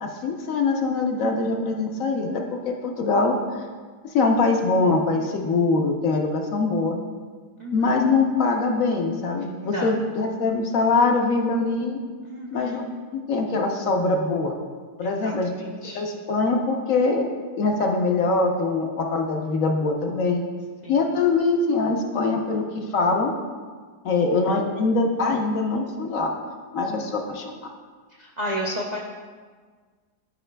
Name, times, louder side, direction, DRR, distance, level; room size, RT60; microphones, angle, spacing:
voice 1, 0.0-3.7 4.1-7.0 7.7-12.0 12.5-12.8 13.1-14.5 15.0-15.6 15.9-17.2 17.6-20.4 20.9-23.3 24.0-26.3 26.7-27.7, left 3 dB, 60° left, 2 dB, 1.0 m, -23 dB
voice 2, 7.6-7.9 9.6-9.9 12.2-12.8 15.0-15.3 15.6-16.0 20.8-20.9 28.2-29.0, equal, 75° right, -3 dB, 0.4 m, -32 dB
12.5 x 4.7 x 2.2 m, 1.5 s
omnidirectional pair, 1.8 m